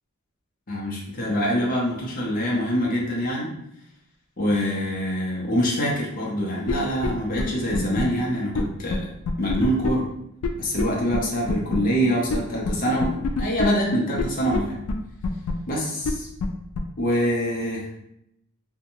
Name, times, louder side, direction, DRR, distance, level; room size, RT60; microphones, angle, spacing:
voice 1, 0.7-3.5 4.4-9.1 9.4-10.1 10.6-14.8 15.7-16.3 17.0-18.0, equal, 40° left, -4 dB, 0.6 m, -25 dB
sound 1, 6.7-6.8 7.0-7.1 7.4-7.5 7.7-8.0 8.5-8.6 8.9-9.0 9.2-9.9 10.4-10.5 10.8-10.9 11.1-11.2 11.5-11.8 12.3-12.4 12.6-12.7 13.0-13.6 14.2-14.3 14.5-14.6 14.9-15.0 15.2-15.5 16.0-16.1 16.4-16.5 16.7-16.8, left 4 dB, 85° left, 0.3 m, -25 dB
2.6 x 2.2 x 2.9 m, 0.78 s
head